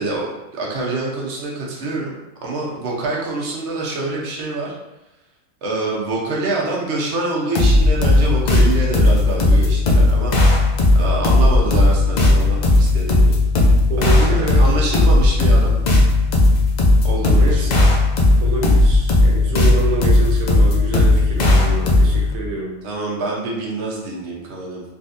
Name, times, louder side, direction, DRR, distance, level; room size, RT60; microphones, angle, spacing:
voice 1, 0.0-4.7 5.6-10.4 10.9-13.4 14.0-15.8 17.0-17.9 22.8-24.8, right 2 dB, 60° right, -3 dB, 1.0 m, -26 dB
sound 1, 7.5-22.3, left 2 dB, 85° left, 0.3 m, -15 dB
voice 2, 13.9-14.8 17.3-17.7 18.4-22.8, right 3 dB, 85° right, -2 dB, 1.1 m, -27 dB
3.7 x 2.5 x 2.5 m, 0.96 s
omnidirectional pair, 1.4 m